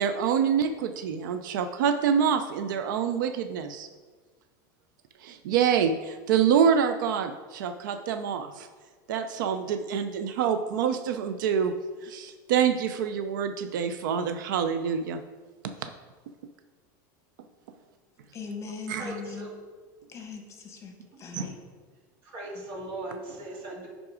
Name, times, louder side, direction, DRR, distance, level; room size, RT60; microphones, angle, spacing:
voice 1, 0.0-3.9 5.2-8.7 9.1-11.7 12.0-15.2 15.8-15.9 18.9-19.0 21.3-21.4, right 7 dB, 85° right, 8 dB, 0.5 m, -26 dB
voice 2, 18.3-19.5 20.1-21.6, left 5 dB, 30° left, 4 dB, 1.1 m, -40 dB
voice 3, 19.0-19.5 21.1-21.5 22.2-23.9, right 2 dB, 55° right, -2 dB, 2.4 m, -39 dB
9.6 x 3.7 x 4.9 m, 1.4 s
supercardioid pair, 130°, 10 cm